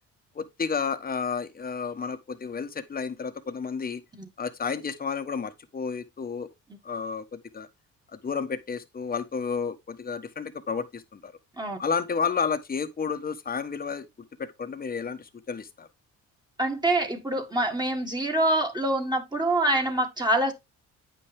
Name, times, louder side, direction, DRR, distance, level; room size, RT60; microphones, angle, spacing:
voice 1, 0.3-4.0 4.4-6.5 6.8-7.7 8.1-11.3 11.8-14.1 14.4-15.9, left 5 dB, 30° left, 1.1 m, -31 dB
voice 2, 16.6-20.5, right 1 dB, 15° right, 1.8 m, -25 dB
9.1 x 5.7 x 3.5 m
cardioid pair, 90°, 30 cm